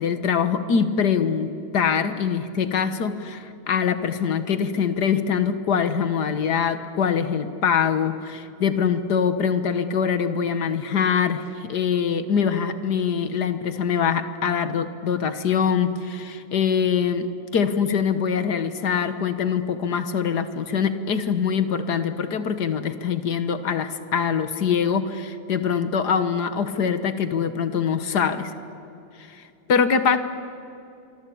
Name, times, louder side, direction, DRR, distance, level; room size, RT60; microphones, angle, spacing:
voice 1, 0.0-17.3 17.5-28.5 29.3-29.4 29.7-30.2, left 7 dB, 55° left, 10 dB, 1.7 m, -23 dB
27.0 x 24.0 x 8.5 m, 2.8 s
omnidirectional pair, 2.2 m